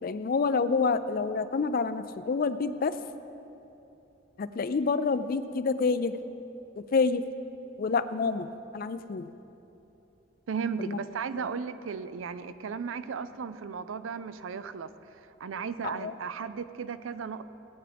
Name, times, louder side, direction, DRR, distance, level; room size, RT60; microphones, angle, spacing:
voice 1, 0.0-3.0 4.4-6.1 6.8-7.2 7.8-9.3 10.8-11.0 15.8-16.1, left 4 dB, 45° left, 12 dB, 0.4 m, -28 dB
voice 2, 10.5-17.4, right 6 dB, 80° right, 13 dB, 0.4 m, -35 dB
18.0 x 8.8 x 3.4 m, 3.0 s
head